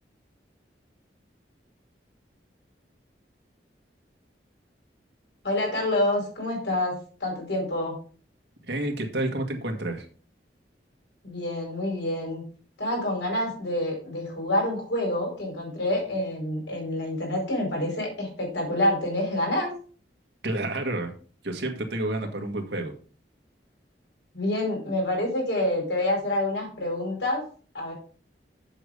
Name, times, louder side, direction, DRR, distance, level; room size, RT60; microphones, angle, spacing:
voice 1, 5.4-8.0 11.2-12.4 12.8-19.7 24.3-27.4 27.7-27.9, left 1 dB, 85° left, 0 dB, 4.7 m, -27 dB
voice 2, 8.6-10.1 20.4-21.1 21.4-22.9, right 1 dB, 70° right, 4 dB, 1.8 m, -29 dB
7.6 x 6.7 x 5.1 m, 0.41 s
head